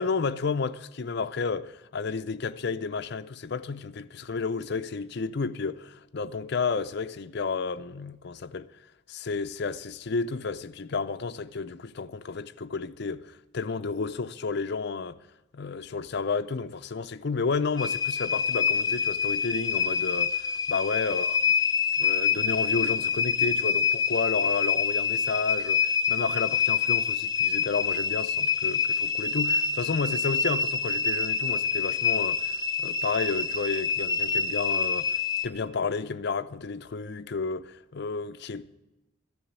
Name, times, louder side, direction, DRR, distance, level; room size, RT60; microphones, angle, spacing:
voice 1, 0.0-8.7 9.1-15.2 15.5-21.5 22.0-32.5 32.8-35.1 35.4-38.8, left 4 dB, 60° left, 0.6 m, -31 dB
sound 1, 17.8-35.4, left 6 dB, 20° left, 0.5 m, -26 dB
14.0 x 7.2 x 9.4 m
head